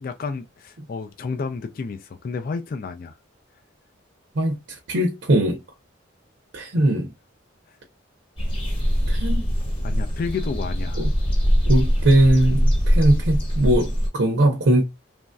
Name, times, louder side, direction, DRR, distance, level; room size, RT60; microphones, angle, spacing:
voice 1, 0.0-3.1 9.8-11.1, left 4 dB, 45° left, 0.3 m, -31 dB
voice 2, 4.4-5.6 6.5-7.1 9.1-9.5 11.0-11.1 11.7-14.8, right 1 dB, 70° right, 0.7 m, -20 dB
sound 1, 8.4-14.1, equal, 25° left, 0.9 m, -22 dB
3.0 x 2.6 x 2.2 m
head